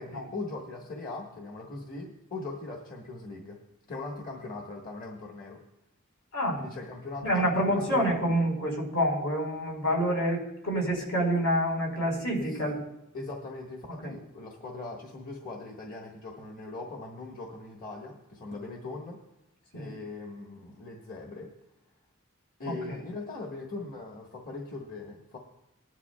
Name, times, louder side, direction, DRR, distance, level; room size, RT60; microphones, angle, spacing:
voice 1, 0.0-3.6 3.9-5.6 6.6-8.1 12.5-12.8 13.1-19.2 19.7-21.5 22.6-25.4, left 3 dB, 45° left, 0 dB, 1.4 m, -40 dB
voice 2, 6.3-6.6 7.2-12.8 13.9-14.2 19.7-19.9 22.6-23.0, equal, 80° left, -1 dB, 4.4 m, -28 dB
19.5 x 11.0 x 2.3 m, 0.89 s
head